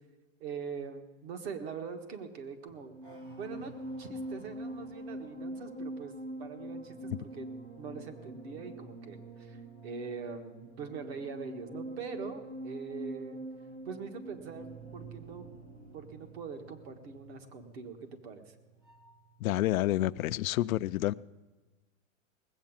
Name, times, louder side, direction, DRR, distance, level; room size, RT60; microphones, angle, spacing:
voice 1, 0.4-3.0 3.4-3.7 4.0-6.1 6.4-7.5 7.8-13.4 13.8-15.5 15.9-18.0 18.2-18.6, right 5 dB, 50° right, 6 dB, 1.7 m, -42 dB
sound 1, 2.7-19.3 19.6-19.9, right 1 dB, 10° right, 0.4 m, -45 dB
voice 2, 19.4-21.1, left 15 dB, 85° left, 14 dB, 0.5 m, -29 dB
19.0 x 8.1 x 7.4 m, 1.3 s
supercardioid pair, 160°, 40 cm